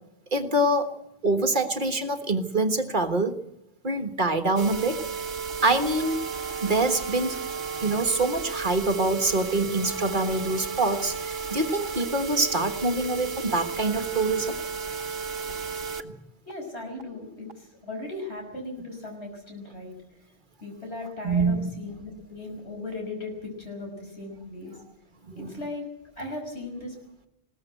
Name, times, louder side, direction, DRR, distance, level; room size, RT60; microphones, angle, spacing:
voice 1, 0.3-0.9 1.2-3.4 3.8-5.0 5.6-6.2 6.6-7.4 7.8-14.6 16.0-16.1 21.2-21.7 25.3-25.5, right 2 dB, 50° right, 6 dB, 1.6 m, -25 dB
sound 1, 4.6-16.0 16.5-16.6 17.0-17.1 17.5-17.6, right 5 dB, 65° right, 1.4 m, -33 dB
voice 2, 16.4-20.0 20.6-24.8 25.4-25.9 26.2-26.9, left 2 dB, 80° left, 2 dB, 6.2 m, -37 dB
21.0 x 17.0 x 8.0 m, 0.83 s
omnidirectional pair, 1.1 m